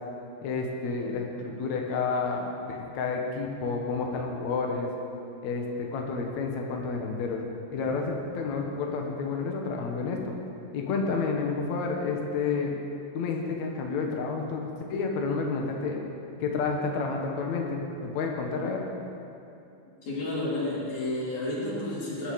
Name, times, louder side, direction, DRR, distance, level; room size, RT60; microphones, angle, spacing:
voice 1, 0.4-4.9 5.4-5.6 5.9-7.4 7.7-10.3 10.7-12.7 13.1-16.0 16.4-18.8, left 4 dB, 90° left, 1 dB, 1.5 m, -30 dB
voice 2, 20.0-22.3, left 2 dB, 40° left, -6 dB, 4.5 m, -31 dB
20.5 x 11.0 x 5.3 m, 2.7 s
omnidirectional pair, 5.5 m